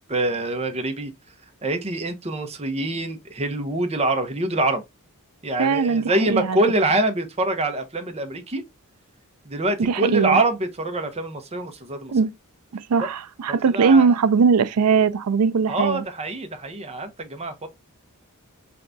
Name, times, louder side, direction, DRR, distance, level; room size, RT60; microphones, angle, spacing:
voice 1, 0.1-1.1 1.6-4.8 5.4-8.6 9.4-12.1 13.5-14.1 15.7-17.7, right 2 dB, 30° right, 0.8 m, -25 dB
voice 2, 5.6-6.6 9.8-10.4 12.1-12.3 12.9-16.0, right 5 dB, 85° right, 0.4 m, -20 dB
4.7 x 3.4 x 2.6 m
head